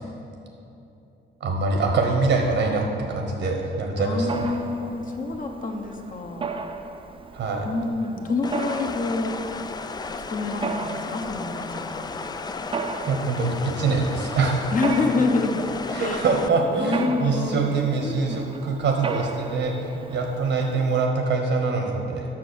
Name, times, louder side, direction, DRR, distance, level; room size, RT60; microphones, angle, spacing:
voice 1, 1.4-4.4 7.3-7.7 13.1-14.6 15.9-22.3, right 4 dB, 75° right, 2 dB, 1.2 m, -24 dB
voice 2, 4.0-6.5 7.6-9.4 10.3-12.0 14.7-15.6 16.0-16.3 16.7-17.6 18.0-18.4, left 3 dB, 45° left, 3 dB, 1.0 m, -27 dB
Mechanisms, 4.3-21.1, right 4 dB, 25° right, 0.5 m, -36 dB
sound 1, 8.4-16.5, left 4 dB, 20° left, 0.3 m, -34 dB
7.6 x 6.1 x 6.2 m, 2.8 s
cardioid pair, 90°, 20 cm